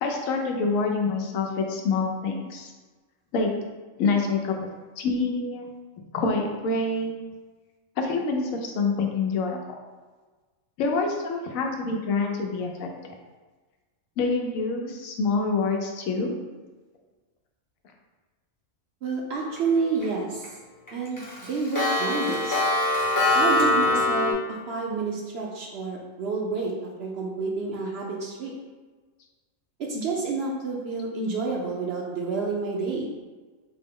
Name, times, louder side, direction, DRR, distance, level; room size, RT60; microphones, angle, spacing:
voice 1, 0.0-2.7 3.3-3.5 4.0-4.6 5.0-5.7 6.1-7.1 8.0-9.8 10.8-13.1 14.2-16.3, left 4 dB, 85° left, 2 dB, 1.0 m, -26 dB
voice 2, 19.0-20.6 20.9-22.6 23.3-24.3 24.7-28.5 29.8-33.1, right 4 dB, 65° right, -1 dB, 0.7 m, -29 dB
Clock, 19.6-20.0 20.4-20.5 20.9-24.3, left 2 dB, 20° left, 0.7 m, -23 dB
4.3 x 2.0 x 3.6 m, 1.3 s
omnidirectional pair, 1.4 m